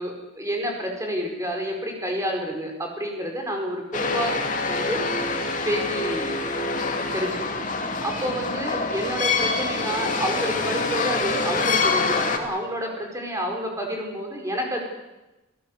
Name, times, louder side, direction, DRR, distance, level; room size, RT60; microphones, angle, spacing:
voice 1, 0.0-4.4 4.7-5.0 5.6-6.4 7.1-7.6 8.0-14.8, equal, 15° right, 1 dB, 5.0 m, -29 dB
sound 1, 3.9-12.4, left 3 dB, 40° left, 2.8 m, -26 dB
28.5 x 17.0 x 8.2 m, 1.0 s
head